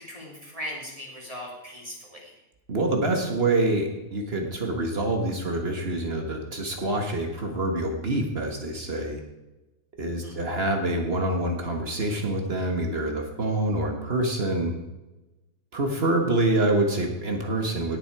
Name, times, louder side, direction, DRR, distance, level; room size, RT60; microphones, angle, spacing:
voice 1, 0.0-2.3 10.2-10.4, equal, 10° right, -2 dB, 2.7 m, -39 dB
voice 2, 2.7-9.2 10.0-14.7 15.7-18.0, right 2 dB, 45° right, 3 dB, 0.8 m, -26 dB
18.0 x 7.2 x 4.8 m, 1.0 s
omnidirectional pair, 3.5 m